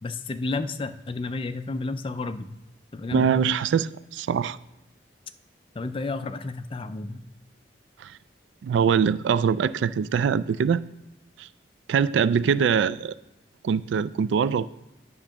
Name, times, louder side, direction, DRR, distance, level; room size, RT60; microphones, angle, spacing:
voice 1, 0.0-2.5 2.9-3.3 5.8-7.3, left 3 dB, 30° left, 0.4 m, -31 dB
voice 2, 3.1-4.6 8.0-8.1 8.6-10.8 11.4-11.5 11.9-13.1 13.6-14.7, right 7 dB, 75° right, 0.3 m, -23 dB
9.8 x 3.8 x 5.8 m
head